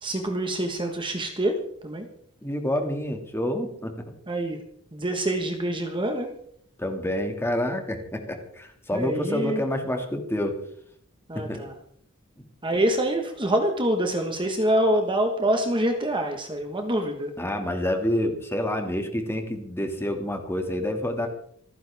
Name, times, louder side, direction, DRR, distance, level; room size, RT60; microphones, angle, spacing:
voice 1, 0.0-2.1 4.3-4.6 4.9-6.3 8.9-9.6 11.3-11.7 12.6-17.3, right 1 dB, 20° right, 4 dB, 1.4 m, -26 dB
voice 2, 2.4-4.1 6.8-10.5 11.3-11.6 17.4-21.3, left 1 dB, 10° left, 4 dB, 2.2 m, -28 dB
27.5 x 9.8 x 3.6 m, 0.65 s
head